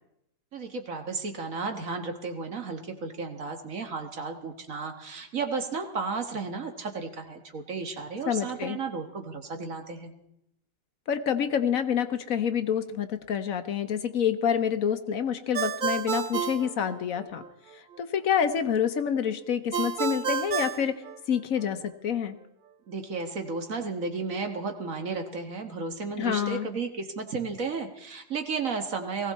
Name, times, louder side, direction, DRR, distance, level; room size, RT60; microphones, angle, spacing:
voice 1, 0.5-10.1 22.9-29.3, right 4 dB, 55° right, 5 dB, 1.8 m, -33 dB
voice 2, 8.3-8.8 11.1-17.4 18.0-21.0 21.3-22.3 26.2-26.7, left 8 dB, 60° left, 10 dB, 1.2 m, -27 dB
Ringtone, 15.5-17.5 19.7-21.7, right 7 dB, 80° right, 0.4 m, -30 dB
19.0 x 16.0 x 4.2 m, 0.81 s
omnidirectional pair, 1.8 m